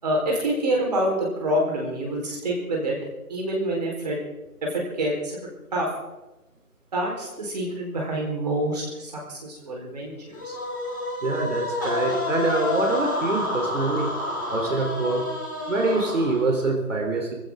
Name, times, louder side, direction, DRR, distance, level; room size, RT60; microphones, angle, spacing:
voice 1, 0.0-3.0 3.3-4.2 4.6-5.4 5.7-5.9 6.9-10.5, right 1 dB, 25° right, -2 dB, 4.5 m, -27 dB
sound 1, 10.3-16.7, left 2 dB, 15° left, 1.7 m, -29 dB
voice 2, 11.2-14.2 14.5-15.3 15.7-17.3, right 2 dB, 55° right, 1 dB, 3.8 m, -25 dB
20.0 x 16.5 x 3.9 m, 1.0 s
figure-of-eight pair, 170°, 45 cm